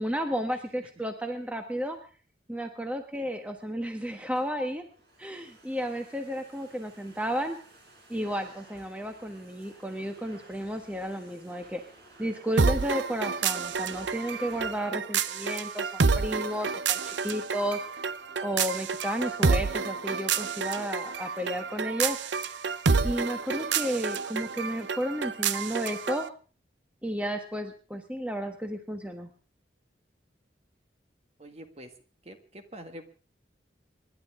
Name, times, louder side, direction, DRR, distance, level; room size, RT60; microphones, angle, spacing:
voice 1, 0.0-2.0 2.5-4.8 5.2-7.6 8.1-11.8 12.2-17.8 18.4-22.2 23.0-26.3 27.0-29.3, equal, 10° right, 4 dB, 1.2 m, -33 dB
Domestic sounds home sounds, 4.1-14.8, right 1 dB, 65° right, 5.8 m, -55 dB
sound 1, 12.6-26.3, right 5 dB, 90° right, 0.7 m, -29 dB
voice 2, 31.4-31.9 32.2-33.0, equal, 35° right, 6 dB, 1.8 m, -46 dB
28.0 x 11.5 x 3.7 m, 0.39 s
head